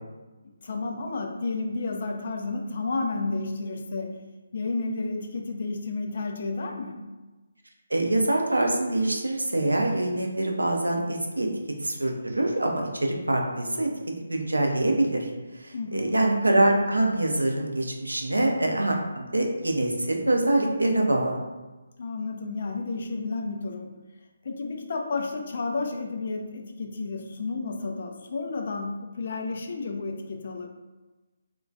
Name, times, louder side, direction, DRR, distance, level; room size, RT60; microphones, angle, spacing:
voice 1, 0.6-4.2 4.5-7.0 15.7-16.2 22.0-23.9 24.4-30.7, left 3 dB, 50° left, 3 dB, 0.3 m, -31 dB
voice 2, 7.9-11.5 11.8-13.9 14.3-15.3 15.6-21.4, right 1 dB, 80° right, 1 dB, 0.4 m, -24 dB
2.2 x 2.1 x 2.6 m, 1.2 s
figure-of-eight pair, 145°, 0 cm